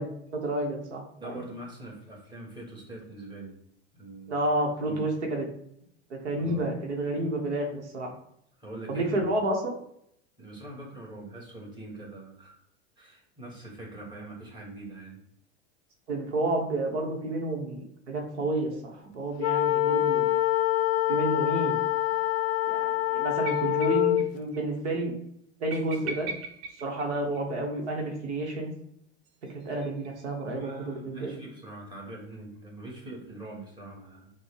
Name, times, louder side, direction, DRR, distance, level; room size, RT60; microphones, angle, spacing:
voice 1, 0.0-1.4 4.3-5.5 6.1-8.1 8.9-9.7 16.1-20.3 21.1-21.8 22.7-25.1 25.6-26.3 26.8-28.7 29.5-31.4, right 2 dB, 80° right, 1 dB, 1.1 m, -30 dB
voice 2, 1.2-3.5 3.9-4.4 4.9-5.0 6.4-6.7 8.6-9.3 10.4-12.6 13.0-15.2 30.5-34.3, right 2 dB, 15° right, -3 dB, 1.8 m, -43 dB
sound 1, 19.4-24.3, left 14 dB, 60° left, 0.4 m, -25 dB
sound 2, 23.4-24.3 24.5-24.6 24.9-25.0 25.7-27.7 29.3-30.5, right 5 dB, 50° right, 0.7 m, -40 dB
6.1 x 2.3 x 3.3 m, 0.72 s
hypercardioid pair, 90°, 34 cm